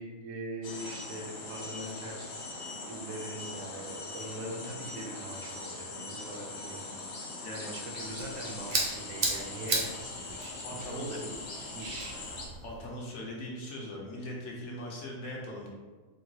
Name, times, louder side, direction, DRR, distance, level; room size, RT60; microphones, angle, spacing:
voice 1, 0.0-2.3 2.8-6.8 7.7-11.3 11.7-12.2, right 1 dB, 75° right, -1 dB, 1.0 m, -41 dB
sound 1, 0.6-12.5, left 3 dB, 80° left, 1.1 m, -41 dB
sound 2, 7.9-12.9, right 2 dB, 50° right, 0.6 m, -36 dB
voice 2, 10.6-11.1 12.6-15.7, left 1 dB, 65° left, -3 dB, 0.9 m, -40 dB
3.6 x 2.3 x 2.8 m, 1.4 s
omnidirectional pair, 1.4 m